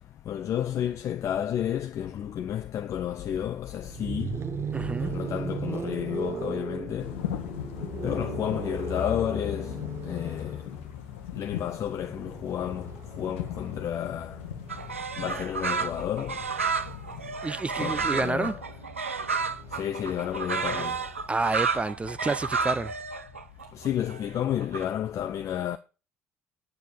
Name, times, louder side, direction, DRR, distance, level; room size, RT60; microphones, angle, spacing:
voice 1, 0.2-4.5 5.0-7.2 8.0-10.8 11.3-14.4 15.2-16.5 17.7-18.6 19.7-21.1 23.7-25.8, left 10 dB, 45° left, 0.6 m, -31 dB
sound 1, 3.8-15.8 17.0-20.6, right 6 dB, 40° right, 1.0 m, -38 dB
voice 2, 4.7-5.1 17.4-18.5 21.3-22.9, right 3 dB, 20° right, 0.4 m, -29 dB
sound 2, 7.0-17.4, left 9 dB, 70° left, 1.0 m, -40 dB
sound 3, 14.7-24.8, right 5 dB, 85° right, 0.4 m, -31 dB
9.2 x 5.6 x 6.8 m
figure-of-eight pair, 50°, 7 cm